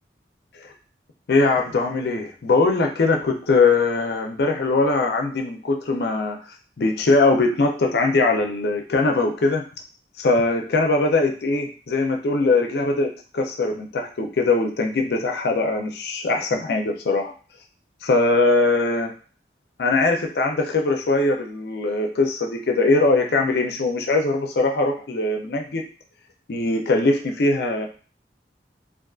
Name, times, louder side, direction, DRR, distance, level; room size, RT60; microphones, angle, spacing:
voice 1, 1.3-6.4 6.8-9.6 10.2-17.3 18.0-19.1 19.8-25.8 26.5-27.9, left 3 dB, 65° left, 3 dB, 0.5 m, -21 dB
2.5 x 2.4 x 2.3 m, 0.38 s
head